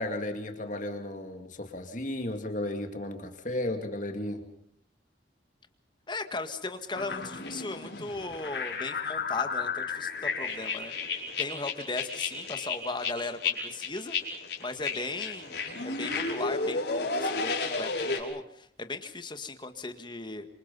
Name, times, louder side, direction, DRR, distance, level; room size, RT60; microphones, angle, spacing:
voice 1, 0.0-4.4, left 1 dB, 45° left, 6 dB, 2.4 m, -34 dB
voice 2, 6.1-10.9 11.4-14.1 14.6-17.9 18.1-20.5, left 3 dB, 25° left, 8 dB, 1.8 m, -37 dB
sound 1, 6.9-18.2, left 4 dB, 70° left, 5.0 m, -33 dB
26.5 x 26.5 x 5.5 m, 0.66 s
head